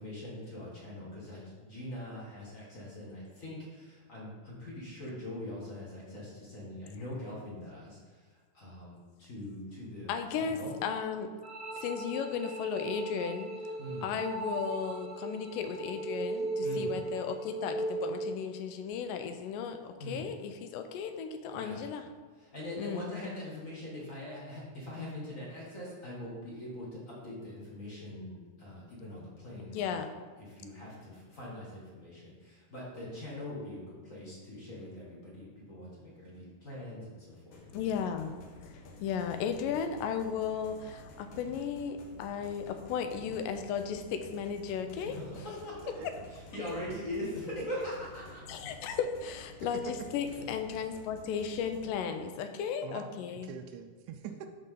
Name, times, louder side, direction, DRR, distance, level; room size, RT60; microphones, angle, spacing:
voice 1, 0.0-8.2 8.5-10.8 13.8-14.1 16.6-17.0 20.0-20.2 21.5-21.9 22.4-30.1 30.4-37.6 44.9-45.8 46.3-48.5, left 1 dB, 35° left, -6 dB, 1.3 m, -42 dB
voice 2, 10.1-11.3 11.7-13.6 14.0-22.1 22.8-23.1 29.7-30.1 37.7-45.2 48.5-53.5, left 7 dB, 85° left, 8 dB, 2.2 m, -35 dB
sound 1, 11.4-18.4, right 2 dB, 30° right, 0.8 m, -37 dB
sound 2, 37.5-51.8, left 1 dB, 70° left, 2.3 m, -51 dB
voice 3, 45.8-46.2 46.7-47.3 52.8-53.1 53.4-54.5, right 8 dB, 85° right, 5 dB, 1.7 m, -45 dB
12.0 x 4.2 x 3.8 m, 1.5 s
omnidirectional pair, 3.9 m